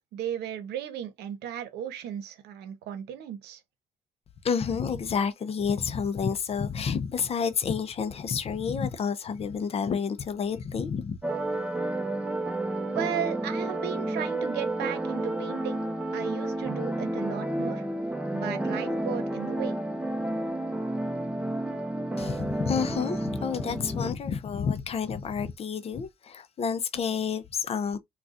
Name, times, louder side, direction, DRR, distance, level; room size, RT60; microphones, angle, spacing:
voice 1, 0.1-3.6 12.8-15.8 16.1-17.9 18.3-19.8, right 10 dB, 75° right, 0.8 m, -35 dB
voice 2, 4.4-11.2 22.2-28.0, left 6 dB, 35° left, 0.5 m, -29 dB
sound 1, 11.2-24.1, right 1 dB, 5° right, 0.7 m, -31 dB
3.9 x 2.3 x 2.4 m
cardioid pair, 110°, 17 cm